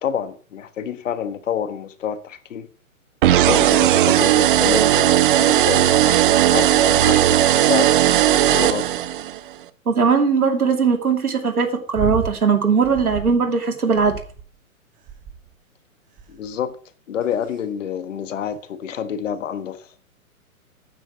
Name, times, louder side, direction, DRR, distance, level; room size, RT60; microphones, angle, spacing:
voice 1, 0.0-2.7 3.5-8.9 16.3-16.7 17.1-19.9, left 8 dB, 60° left, 1.4 m, -28 dB
sound 1, 3.2-9.4, right 12 dB, 35° right, 0.8 m, -16 dB
voice 2, 9.9-14.1, right 5 dB, 90° right, 2.7 m, -19 dB
sound 2, 11.9-12.4 12.8-13.4 13.9-14.6 15.1-15.5 16.2-16.5 17.2-17.6 18.5-18.6, right 6 dB, 20° right, 1.4 m, -31 dB
9.4 x 8.7 x 6.2 m
hypercardioid pair, 140°, 43 cm